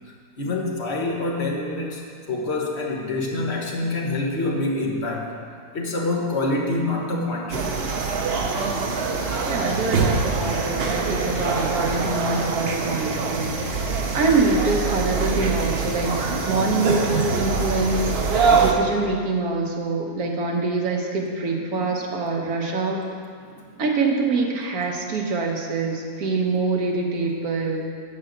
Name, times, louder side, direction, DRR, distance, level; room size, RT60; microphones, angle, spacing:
voice 1, 0.4-5.3 5.7-7.8 21.7-21.8 23.5-23.6, left 2 dB, 40° left, -2 dB, 1.5 m, -26 dB
sound 1, 7.5-18.7, right 4 dB, 50° right, 0.8 m, -24 dB
voice 2, 9.4-13.9 14.1-23.0 23.8-27.9, right 3 dB, 65° right, 0 dB, 1.6 m, -25 dB
8.0 x 5.6 x 7.8 m, 2.1 s
omnidirectional pair, 1.7 m